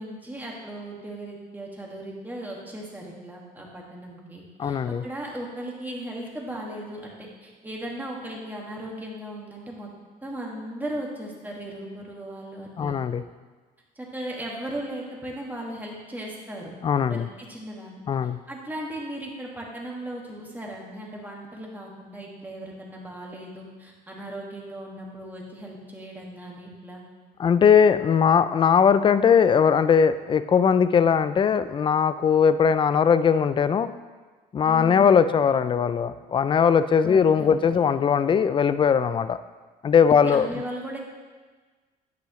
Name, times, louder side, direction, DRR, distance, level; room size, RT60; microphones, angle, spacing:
voice 1, 0.0-9.9 10.2-12.9 14.0-16.7 17.1-18.0 18.5-27.0 34.6-35.1 37.0-37.8 40.1-41.0, right 1 dB, 10° right, -2 dB, 2.0 m, -37 dB
voice 2, 4.6-5.0 12.8-13.2 16.8-17.3 18.1-18.4 27.4-33.9 34.5-39.4 39.8-40.5, left 7 dB, 30° left, 13 dB, 0.4 m, -20 dB
10.0 x 8.4 x 3.2 m, 1.4 s
cardioid pair, 110°, 17 cm